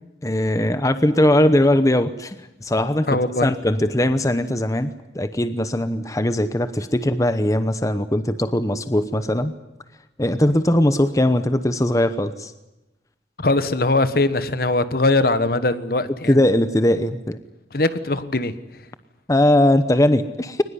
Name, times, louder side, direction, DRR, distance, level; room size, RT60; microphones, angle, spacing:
voice 1, 0.2-2.4 2.6-9.5 10.2-12.5 16.3-17.4 19.3-20.6, left 1 dB, 20° left, 11 dB, 0.8 m, -20 dB
voice 2, 3.1-3.5 13.4-16.4 17.7-18.8, left 2 dB, 55° left, 13 dB, 1.3 m, -21 dB
22.5 x 20.0 x 9.7 m, 0.97 s
head